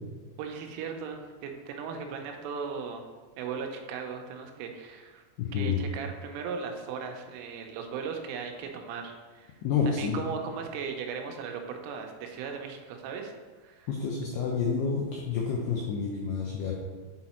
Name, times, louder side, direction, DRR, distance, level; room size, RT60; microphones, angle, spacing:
voice 1, 0.4-3.0 3.4-5.2 5.5-9.5 9.9-13.3 13.6-13.9, right 6 dB, 90° right, 3 dB, 3.2 m, -37 dB
voice 2, 5.4-5.8 9.6-10.2 13.9-16.7, left 6 dB, 90° left, -2 dB, 2.3 m, -29 dB
7.8 x 4.0 x 4.3 m, 1.4 s
omnidirectional pair, 5.6 m